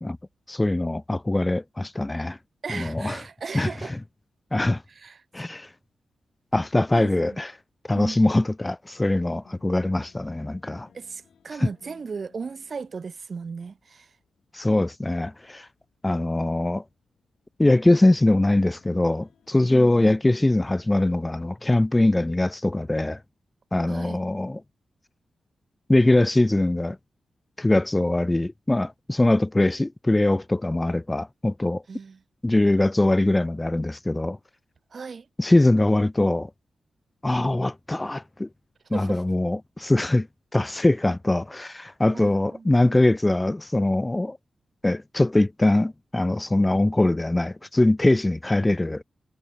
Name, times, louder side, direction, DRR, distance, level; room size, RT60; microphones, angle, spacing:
voice 1, 0.5-2.4 2.7-3.2 3.5-3.7 4.5-4.8 5.3-5.7 6.5-7.5 7.9-10.9 11.6-11.7 14.5-15.7 16.0-16.8 17.6-23.2 23.7-24.6 25.9-27.0 27.6-31.8 32.4-34.4 35.4-36.5 37.2-38.5 38.9-40.3 40.5-44.4 44.8-49.0, left 2 dB, 20° left, 0.6 m, -22 dB
voice 2, 2.6-4.0 4.9-5.5 6.9-7.4 7.9-8.2 10.9-14.1 19.7-20.2 23.9-24.2 31.9-32.2 34.9-35.3 38.9-39.2 42.1-42.7, right 5 dB, 55° right, 1.6 m, -37 dB
sound 1, 9.3-21.1, left 7 dB, 80° left, 5.8 m, -61 dB
cardioid pair, 60°, 0 cm